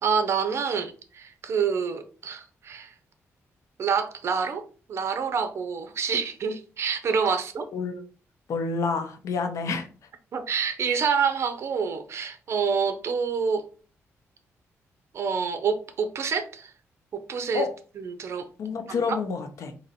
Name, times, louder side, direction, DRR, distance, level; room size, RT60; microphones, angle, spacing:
voice 1, 0.0-2.9 3.8-7.7 10.3-13.7 15.1-16.7 17.1-17.7 18.0-18.5 19.1-19.2, right 6 dB, 55° right, 0.7 m, -27 dB
voice 2, 7.7-8.0 8.5-9.9 17.5-17.7 18.6-19.7, left 4 dB, 70° left, 0.9 m, -28 dB
3.9 x 2.9 x 4.2 m
cardioid pair, 135°, 5 cm